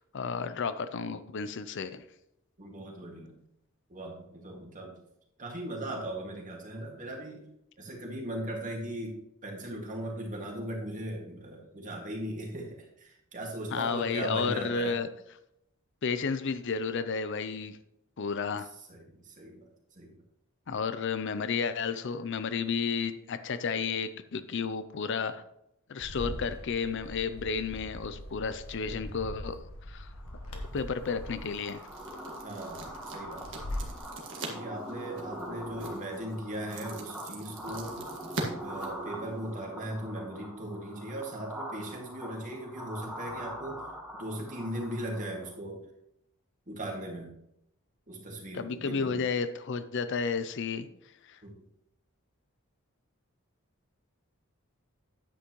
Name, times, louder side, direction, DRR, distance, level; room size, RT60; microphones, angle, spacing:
voice 1, 0.1-2.0 13.7-15.1 16.0-17.8 18.2-18.7 20.7-25.4 25.9-30.1 30.7-31.8 48.5-50.9 51.3-51.4, left 5 dB, 60° left, 12 dB, 0.5 m, -32 dB
voice 2, 2.6-3.3 3.9-5.0 5.4-7.5 7.8-15.0 18.9-19.7 20.0-20.1 32.4-33.7 34.5-37.9 38.6-43.8 44.2-45.8 46.7-47.3 48.1-49.3 51.4-51.5, right 1 dB, 35° right, 0 dB, 2.1 m, -38 dB
Bird, 26.0-34.0, left 1 dB, 80° left, 1.5 m, -42 dB
sound 1, 30.2-45.5, right 1 dB, 5° right, 1.3 m, -43 dB
sound 2, 30.6-39.6, right 2 dB, 60° right, 1.7 m, -43 dB
9.9 x 8.3 x 3.1 m, 0.78 s
head